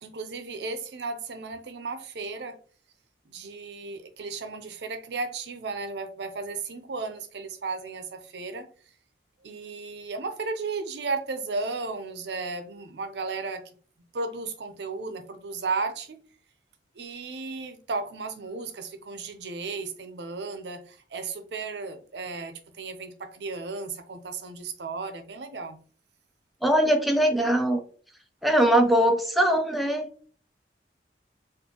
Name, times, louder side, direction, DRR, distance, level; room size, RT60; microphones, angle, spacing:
voice 1, 0.0-2.6 3.3-8.7 9.4-13.6 14.1-16.2 17.0-25.8, right 4 dB, 75° right, 0.6 m, -34 dB
voice 2, 26.6-27.8 28.4-30.1, right 1 dB, ahead, 0.4 m, -21 dB
4.3 x 2.5 x 2.8 m
head